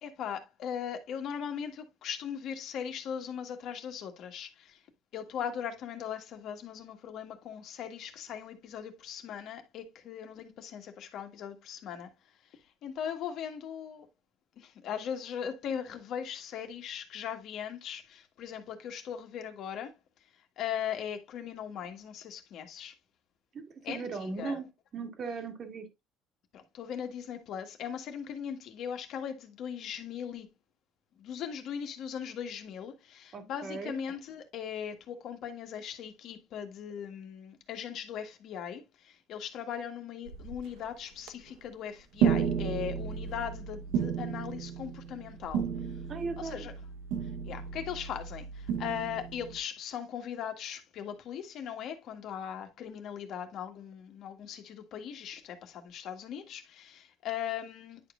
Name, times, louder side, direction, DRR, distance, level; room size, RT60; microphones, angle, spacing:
voice 1, 0.0-4.8 5.1-12.1 12.8-14.1 14.6-19.9 20.6-22.9 23.8-24.6 26.5-30.5 31.2-45.6 46.4-46.7 47.4-58.0, left 8 dB, 55° left, 1.5 m, -39 dB
voice 2, 23.5-24.7 24.9-25.9 33.3-34.0 46.1-46.7, right 4 dB, 40° right, 1.8 m, -37 dB
sound 1, 40.3-40.8 41.3-41.5 42.2-49.6, right 7 dB, 75° right, 1.0 m, -33 dB
10.0 x 5.1 x 2.4 m
cardioid pair, 140°, 0 cm